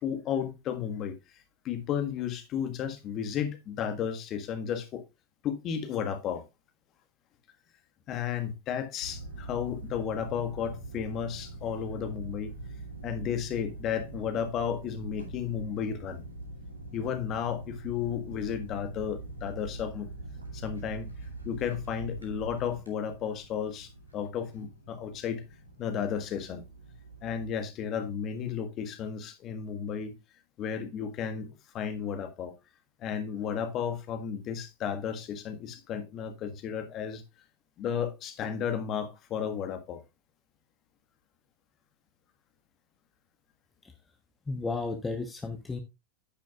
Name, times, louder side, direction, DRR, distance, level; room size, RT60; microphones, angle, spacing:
voice 1, 0.0-1.2 1.6-5.0 5.4-6.4 8.1-12.5 13.0-16.2 16.9-20.1 20.5-21.1 21.4-25.4 25.8-26.6 27.2-30.1 30.6-32.5 33.0-37.2 37.8-40.0, left 8 dB, 35° left, 1.6 m, -33 dB
sound 1, 9.0-27.5, right 2 dB, 85° right, 2.6 m, -44 dB
voice 2, 44.5-45.8, left 3 dB, 10° left, 1.0 m, -33 dB
10.5 x 9.1 x 2.4 m
figure-of-eight pair, 90°, 0 cm